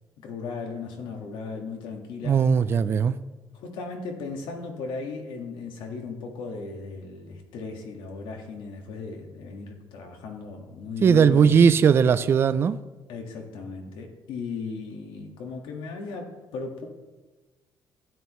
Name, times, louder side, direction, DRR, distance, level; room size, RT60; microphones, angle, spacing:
voice 1, 0.2-2.4 3.5-11.6 13.1-16.9, left 4 dB, 75° left, 2 dB, 1.7 m, -36 dB
voice 2, 2.2-3.2 11.0-12.8, right 6 dB, 30° right, 13 dB, 0.3 m, -18 dB
12.5 x 9.9 x 3.1 m, 1.2 s
cardioid pair, 175°, 8 cm